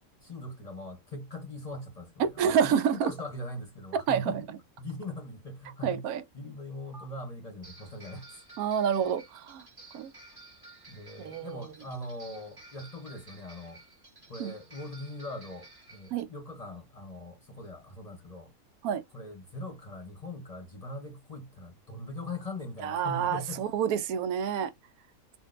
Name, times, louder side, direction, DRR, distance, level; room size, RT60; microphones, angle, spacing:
voice 1, 0.2-4.4 4.8-6.0 6.3-8.4 10.9-13.8 14.3-18.5 19.1-23.6, left 1 dB, 30° left, 0.8 m, -41 dB
voice 2, 2.2-3.1 3.9-4.4 5.8-6.2 8.6-9.6 9.9-10.1 11.2-11.7 14.4-14.5 16.1-16.3 18.8-19.0 22.8-24.7, right 8 dB, 80° right, 1.1 m, -28 dB
sound 1, 6.9-7.1 7.6-16.2, right 2 dB, 15° right, 1.2 m, -53 dB
3.7 x 2.5 x 2.5 m
omnidirectional pair, 1.5 m